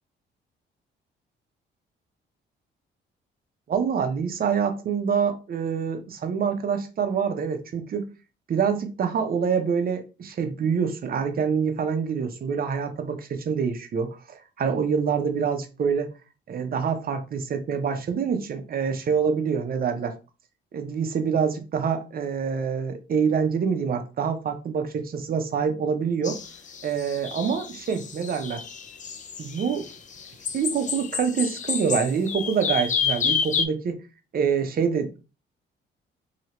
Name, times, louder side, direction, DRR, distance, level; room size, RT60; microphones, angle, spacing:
voice 1, 3.7-8.1 8.5-16.1 16.5-20.1 20.7-26.4 26.8-28.6 29.4-29.9 30.5-34.0 34.3-35.2, right 6 dB, 50° right, 0.7 m, -26 dB
sound 1, 26.2-33.6, left 6 dB, 40° left, 0.5 m, -29 dB
2.9 x 2.8 x 2.9 m
cardioid pair, 90°, 20 cm